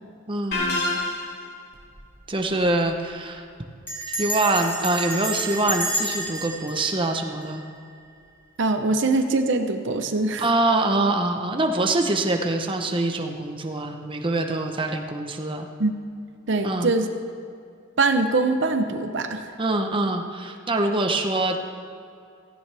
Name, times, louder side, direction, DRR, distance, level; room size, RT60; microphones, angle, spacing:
voice 1, 0.3-0.8 2.3-3.4 4.1-7.6 10.4-15.7 16.6-16.9 19.6-21.6, right 2 dB, 25° right, 4 dB, 0.9 m, -24 dB
sound 1, 0.5-1.5, left 2 dB, 50° left, 2.6 m, -26 dB
Bell, 1.7-2.1 2.4-2.5 2.7-3.1 3.9-8.0, right 1 dB, 10° left, 2.6 m, -30 dB
voice 2, 8.6-10.4 15.8-15.9 16.5-17.1 18.0-19.5, right 3 dB, 60° right, 6 dB, 0.8 m, -22 dB
17.0 x 15.0 x 3.4 m, 2.4 s
head